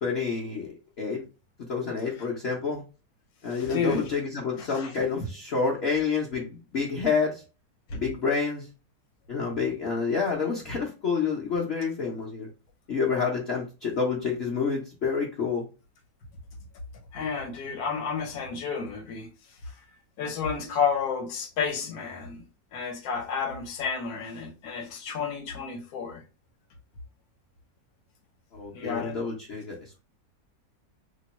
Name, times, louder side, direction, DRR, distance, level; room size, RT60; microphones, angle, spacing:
voice 1, 0.0-1.2 1.7-2.8 3.4-7.4 7.9-8.7 9.3-12.5 12.9-15.6 28.5-29.8, left 5 dB, 50° left, 0.8 m, -28 dB
voice 2, 3.5-4.1 4.6-5.0 7.9-8.0 17.1-19.3 20.2-22.4 22.7-26.2 28.7-29.2, left 6 dB, 70° left, 1.3 m, -31 dB
2.9 x 2.2 x 4.0 m
omnidirectional pair, 1.7 m